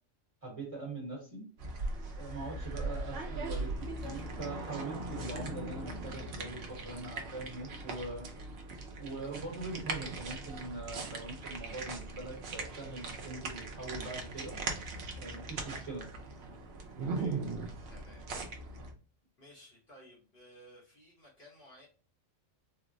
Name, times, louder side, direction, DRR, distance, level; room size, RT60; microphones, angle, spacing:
voice 1, 0.4-1.5 2.2-3.7 4.0-8.3 9.0-14.6 15.2-16.1, right 2 dB, 30° right, -2 dB, 1.0 m, -42 dB
sound 1, 1.6-18.9, right 3 dB, 60° right, 0.7 m, -40 dB
voice 2, 2.5-2.9 4.0-4.1 16.9-17.4 17.9-18.3 19.4-21.9, equal, 45° left, -4 dB, 1.1 m, -57 dB
3.7 x 2.0 x 2.5 m, 0.37 s
omnidirectional pair, 1.3 m